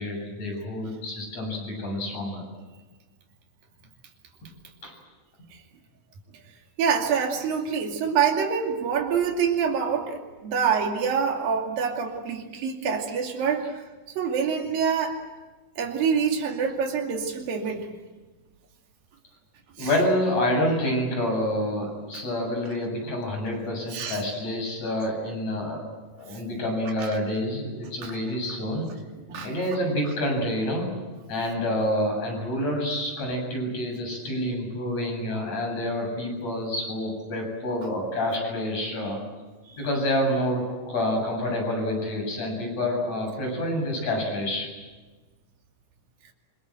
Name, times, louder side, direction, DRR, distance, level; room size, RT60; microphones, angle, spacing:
voice 1, 0.0-2.4 4.8-4.9 19.8-25.8 26.2-28.9 29.4-31.0 31.3-39.2 39.8-44.7, left 1 dB, 50° left, 2 dB, 9.0 m, -28 dB
voice 2, 6.8-13.8 14.2-15.2 15.8-17.9 19.8-19.9 22.1-22.2 23.9-24.2 26.3-26.4 27.0-27.1 28.0-28.2 29.3-29.5 39.7-39.9, right 6 dB, 85° right, 1 dB, 4.4 m, -26 dB
26.0 x 24.5 x 7.9 m, 1.3 s
omnidirectional pair, 4.0 m